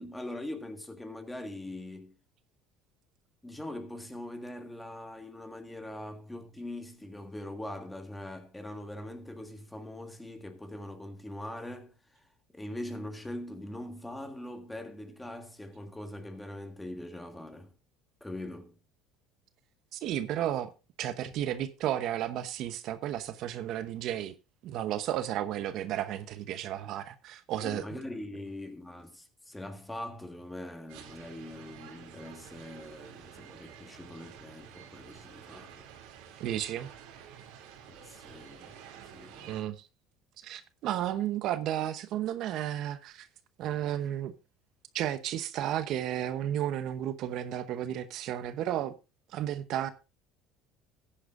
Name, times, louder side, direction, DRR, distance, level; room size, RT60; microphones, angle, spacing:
voice 1, 0.0-2.1 3.4-12.0 12.5-17.7 18.2-18.8 27.6-35.9 37.9-38.8 39.1-39.6, left 1 dB, 10° left, 1.7 m, -42 dB
voice 2, 19.9-20.7 21.0-24.3 24.6-27.8 36.4-36.9 39.5-39.9 40.4-43.3 43.6-44.3 44.9-48.9 49.3-49.9, right 11 dB, 60° right, 0.8 m, -33 dB
sound 1, 30.9-39.6, right 8 dB, 80° right, 2.7 m, -50 dB
14.5 x 10.0 x 2.5 m
cardioid pair, 120°, 0 cm